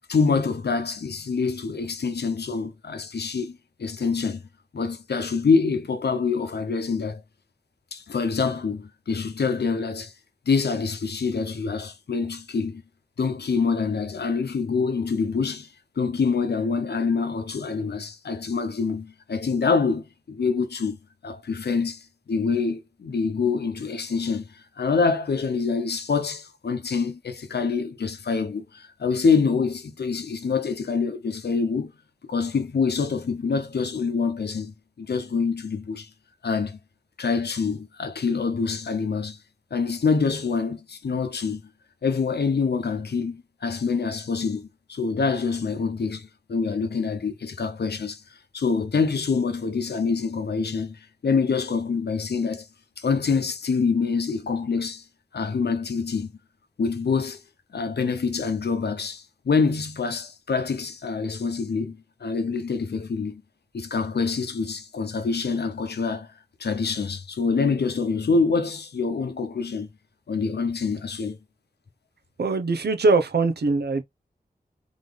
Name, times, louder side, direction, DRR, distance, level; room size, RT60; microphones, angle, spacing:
voice 1, 0.1-4.4 4.7-7.2 7.9-10.1 10.5-12.8 13.2-15.7 16.0-21.0 21.2-31.9 32.3-36.1 36.4-36.8 37.2-39.4 39.7-41.6 42.0-52.7 53.0-55.0 55.3-56.3 56.8-57.4 57.7-63.4 63.7-66.3 66.6-69.9 70.3-71.4, left 5 dB, 85° left, 0.9 m, -26 dB
voice 2, 72.4-74.0, right 3 dB, 90° right, 0.9 m, -22 dB
4.0 x 3.5 x 3.4 m
wide cardioid pair, 80°, 17 cm